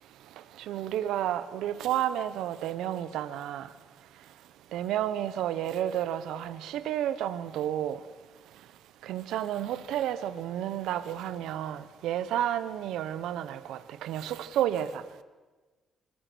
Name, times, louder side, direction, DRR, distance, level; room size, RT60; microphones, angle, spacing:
voice 1, 0.7-3.7 4.7-8.0 9.0-15.0, right 11 dB, 85° right, 13 dB, 1.2 m, -31 dB
25.5 x 21.0 x 6.3 m, 1.3 s
cardioid pair, 90°, 0 cm